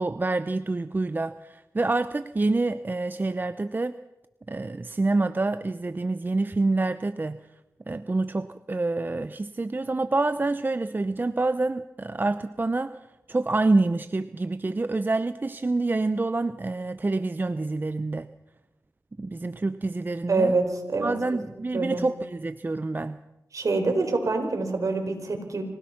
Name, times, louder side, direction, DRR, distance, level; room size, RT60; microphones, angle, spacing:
voice 1, 0.0-3.9 4.5-7.4 7.9-13.0 13.3-18.3 19.2-20.5 21.0-23.2, right 2 dB, 30° right, 12 dB, 0.7 m, -27 dB
voice 2, 20.3-21.1 21.7-22.0 23.5-25.6, right 3 dB, 60° right, 4 dB, 4.6 m, -25 dB
26.0 x 17.0 x 6.0 m, 0.96 s
cardioid pair, 55°, 6 cm